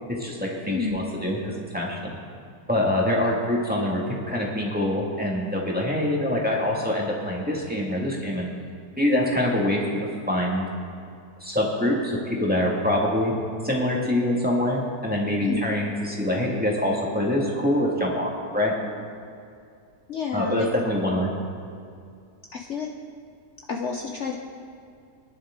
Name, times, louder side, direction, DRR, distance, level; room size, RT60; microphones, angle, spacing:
voice 1, 0.1-2.2 2.7-8.5 9.0-10.7 11.4-13.3 13.6-18.7 20.3-21.3, left 1 dB, 5° right, -3 dB, 1.9 m, -25 dB
voice 2, 0.7-1.1 15.4-15.6 20.1-20.7 22.5-22.9 23.7-24.4, left 5 dB, 55° left, 1 dB, 1.0 m, -29 dB
24.0 x 10.5 x 3.7 m, 2.4 s
omnidirectional pair, 1.7 m